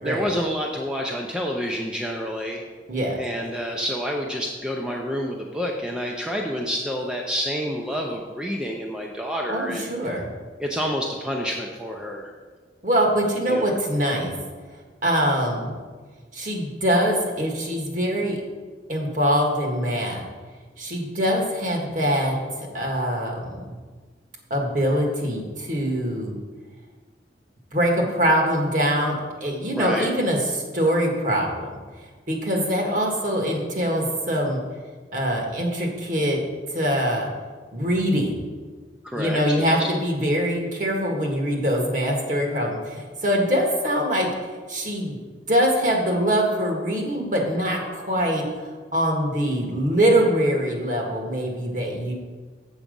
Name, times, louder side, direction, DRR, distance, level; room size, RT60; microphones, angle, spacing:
voice 1, 0.0-2.6 3.2-10.1 10.6-12.3 13.5-13.7 29.7-30.1 39.0-39.9, equal, 5° right, 0 dB, 0.6 m, -28 dB
voice 2, 9.5-10.2 12.8-14.3 15.0-15.7 16.3-18.4 18.9-20.2 20.8-22.4 22.7-23.8 24.5-26.4 27.7-31.8 32.3-34.6 35.1-36.4 36.7-37.3 37.7-38.4 39.1-44.3 44.7-45.2 45.5-48.4 48.9-52.1, equal, 45° right, 0 dB, 1.7 m, -23 dB
7.4 x 7.2 x 5.3 m, 1.4 s
head